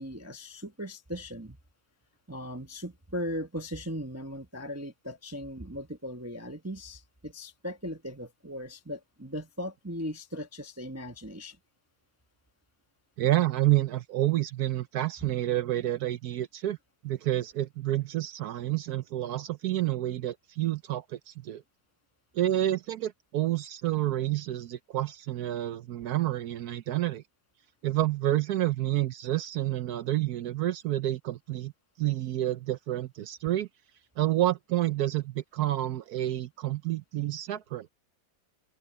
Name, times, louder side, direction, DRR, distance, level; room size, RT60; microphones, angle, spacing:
voice 1, 0.0-1.6 2.3-11.6, equal, 20° right, 0.4 m, -38 dB
voice 2, 13.2-16.8 17.0-21.6 22.3-27.2 27.8-31.7 32.0-33.7 34.2-37.9, right 14 dB, 70° right, 1.0 m, -29 dB
open air
omnidirectional pair, 2.2 m